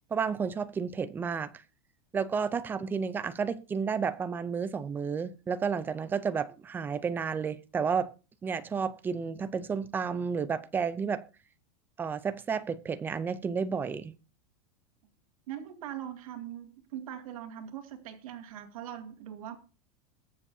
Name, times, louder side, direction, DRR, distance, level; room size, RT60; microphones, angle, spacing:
voice 1, 0.1-1.5 2.1-8.1 8.4-11.2 12.0-14.1, right 6 dB, 10° right, 0.5 m, -31 dB
voice 2, 15.5-19.6, right 10 dB, 80° right, 2.3 m, -41 dB
21.5 x 7.3 x 2.7 m
supercardioid pair, 170°, 18 cm